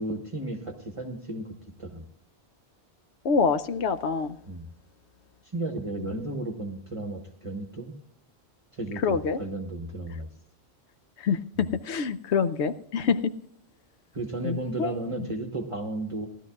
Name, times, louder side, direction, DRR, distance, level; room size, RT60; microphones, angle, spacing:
voice 1, 0.0-1.5 1.8-2.1 4.4-4.7 5.5-7.9 8.7-10.3 14.1-16.3, right 2 dB, 30° right, 4 dB, 1.2 m, -34 dB
voice 2, 3.2-4.3 9.0-9.4 11.2-13.3 14.4-14.9, left 5 dB, 85° left, 11 dB, 1.0 m, -26 dB
18.5 x 12.5 x 2.4 m, 0.70 s
omnidirectional pair, 1.1 m